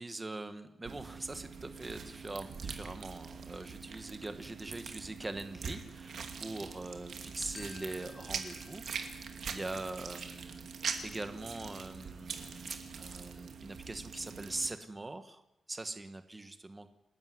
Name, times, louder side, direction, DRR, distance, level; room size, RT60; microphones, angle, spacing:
voice 1, 0.0-10.7 11.0-15.4 15.7-16.9, right 2 dB, 15° right, 8 dB, 1.4 m, -42 dB
sound 1, 0.8-14.7, right 5 dB, 55° right, 2.6 m, -43 dB
Glockenspiel, 7.5-10.0, left 5 dB, 40° left, 2.0 m, -56 dB
28.5 x 12.5 x 9.5 m, 0.86 s
wide cardioid pair, 175°, 0 cm